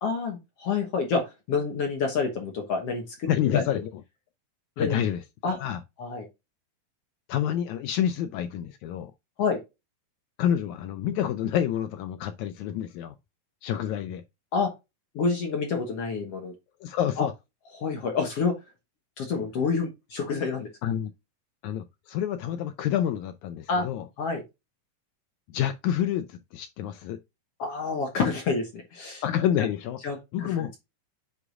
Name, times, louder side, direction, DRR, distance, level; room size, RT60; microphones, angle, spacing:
voice 1, 0.0-3.6 4.8-5.0 5.4-5.6 6.0-6.3 9.4-9.6 14.5-14.7 15.1-16.5 17.2-17.3 17.7-18.6 19.2-20.7 23.7-23.9 24.2-24.4 27.6-29.2 30.0-30.2 30.4-30.8, left 5 dB, 60° left, 1.8 m, -28 dB
voice 2, 3.3-3.9 4.8-5.2 5.5-5.8 7.3-9.1 10.4-13.1 13.6-14.2 16.8-17.3 20.8-21.1 21.6-24.1 25.5-27.2 29.2-30.0 30.3-30.7, left 10 dB, 90° left, 1.6 m, -28 dB
8.1 x 4.8 x 2.4 m
omnidirectional pair, 3.9 m